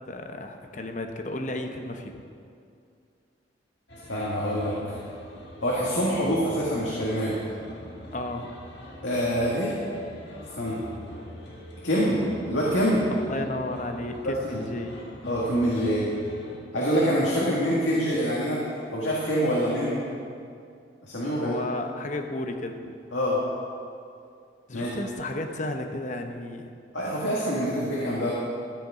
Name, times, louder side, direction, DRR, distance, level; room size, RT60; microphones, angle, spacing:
voice 1, 0.1-2.2 8.1-8.5 13.1-15.0 21.3-22.9 24.7-26.7, left 2 dB, 40° left, 5 dB, 0.9 m, -33 dB
sound 1, 3.9-16.6, equal, 60° left, 1.7 m, -44 dB
voice 2, 4.1-4.7 5.6-7.3 9.0-9.7 10.5-10.8 11.8-12.2 12.5-13.0 14.2-14.6 15.3-16.1 16.7-18.6 18.9-20.0 21.0-21.6 23.1-23.4 24.7-24.9 26.9-28.3, equal, 80° left, -6 dB, 1.9 m, -25 dB
13.5 x 8.8 x 4.9 m, 2.4 s
head